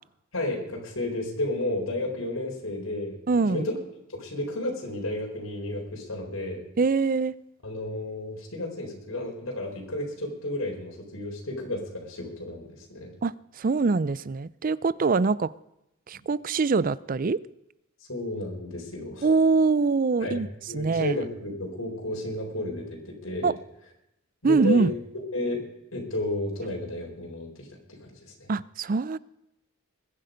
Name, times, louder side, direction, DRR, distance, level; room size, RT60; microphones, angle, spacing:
voice 1, 0.3-3.8 4.1-6.6 7.6-13.1 18.1-19.3 20.2-23.5 24.4-25.6 25.9-28.5, left 1 dB, 75° left, 4.2 m, -32 dB
voice 2, 3.3-3.7 6.8-7.3 13.2-15.5 16.1-17.4 19.2-20.5 20.7-21.1 23.4-23.6 24.4-24.9 28.5-29.2, right 4 dB, 40° right, 0.5 m, -23 dB
22.0 x 10.0 x 5.2 m
head